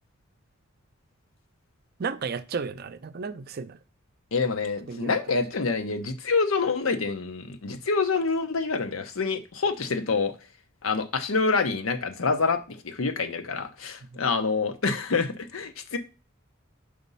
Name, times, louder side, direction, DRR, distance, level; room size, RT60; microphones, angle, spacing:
voice 1, 2.0-3.8 4.9-5.2 14.1-14.2, right 5 dB, 50° right, 0.5 m, -33 dB
voice 2, 4.3-10.3 10.8-16.0, left 4 dB, 90° left, 0.8 m, -27 dB
5.1 x 4.1 x 5.3 m
head